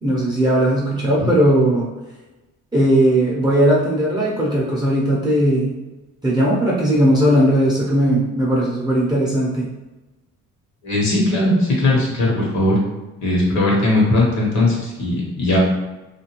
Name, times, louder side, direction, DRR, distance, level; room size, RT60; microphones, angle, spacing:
voice 1, 0.0-1.9 2.7-5.8 6.2-9.7, right 1 dB, 15° right, -6 dB, 0.6 m, -18 dB
voice 2, 10.8-12.8 13.2-15.6, left 2 dB, 65° left, -4 dB, 1.1 m, -18 dB
2.4 x 2.2 x 3.0 m, 1.1 s
cardioid pair, 90°, 30 cm